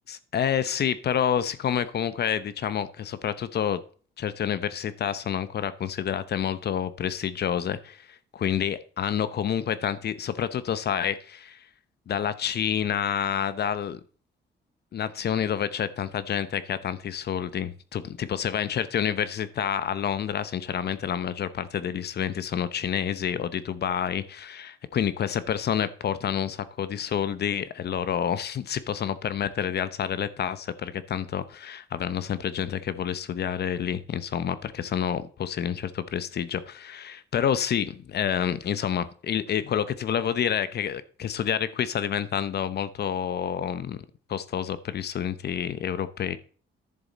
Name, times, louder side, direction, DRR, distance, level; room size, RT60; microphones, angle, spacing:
voice 1, 0.1-3.8 4.2-11.6 12.1-14.0 14.9-46.4, left 9 dB, 55° left, 15 dB, 0.8 m, -28 dB
10.5 x 7.0 x 4.2 m, 0.43 s
cardioid pair, 90°, 20 cm